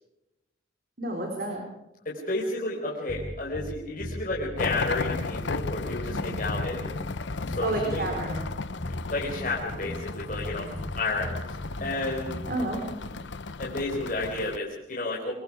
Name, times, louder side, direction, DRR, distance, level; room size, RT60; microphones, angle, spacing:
voice 1, 1.0-1.6 6.1-6.5 7.6-8.4 10.5-11.0 12.5-13.0, right 1 dB, 50° right, 1 dB, 4.3 m, -32 dB
voice 2, 2.0-6.9 7.4-8.0 9.1-10.7 11.0-12.4 13.6-15.3, left 2 dB, 45° left, -3 dB, 4.5 m, -31 dB
sound 1, 3.1-12.7, equal, 25° left, 1.0 m, -38 dB
sound 2, 4.6-14.6, left 3 dB, 70° left, 0.8 m, -35 dB
26.5 x 22.5 x 4.9 m, 0.91 s
head